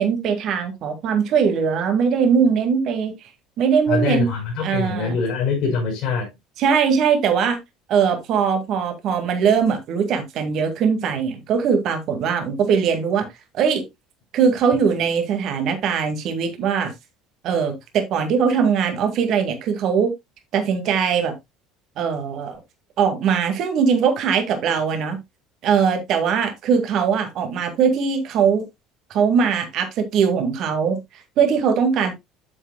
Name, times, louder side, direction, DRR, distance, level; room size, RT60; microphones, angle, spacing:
voice 1, 0.0-3.3 3.6-4.3 4.6-5.2 6.6-7.6 7.9-13.3 13.5-13.8 14.3-16.9 17.4-20.1 20.5-21.3 22.0-22.6 23.0-25.2 25.6-28.6 29.1-32.2, right 6 dB, 55° right, 2.1 m, -21 dB
voice 2, 3.9-6.3, left 5 dB, 60° left, 4.4 m, -23 dB
9.8 x 7.6 x 2.3 m
hypercardioid pair, 65°, 0 cm